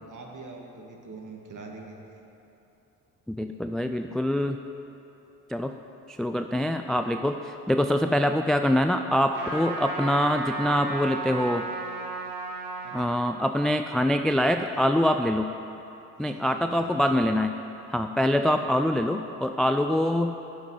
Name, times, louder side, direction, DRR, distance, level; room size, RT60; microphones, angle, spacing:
voice 1, 0.1-2.0 12.8-13.1 14.4-14.8 16.2-17.3, right 3 dB, 40° right, 1 dB, 2.2 m, -44 dB
voice 2, 3.3-4.6 5.5-5.7 6.1-11.6 12.9-15.5 16.2-17.5 17.9-20.5, left 1 dB, ahead, 6 dB, 0.3 m, -24 dB
Trumpet, 9.3-13.0, right 3 dB, 85° right, 1.8 m, -34 dB
10.0 x 7.1 x 9.3 m, 2.9 s
figure-of-eight pair, 45°, 45 cm